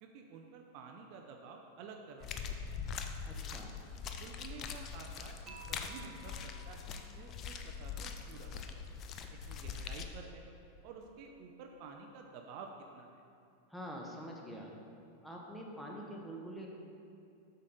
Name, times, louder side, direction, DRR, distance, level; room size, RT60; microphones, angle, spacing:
voice 1, 0.0-2.9 4.2-8.8 9.3-10.4 10.8-13.2, right 5 dB, 45° right, 2 dB, 0.6 m, -51 dB
sound 1, 2.2-10.1, left 6 dB, 30° left, 0.5 m, -43 dB
voice 2, 3.3-3.7 13.7-14.7 15.2-16.7, equal, 5° left, -1 dB, 1.2 m, -45 dB
Dishes pots and pans / Chink clink, 5.5-7.6, right 5 dB, 25° right, 1.1 m, -56 dB
8.2 x 6.6 x 4.1 m, 2.6 s
figure-of-eight pair, 90°, 0 cm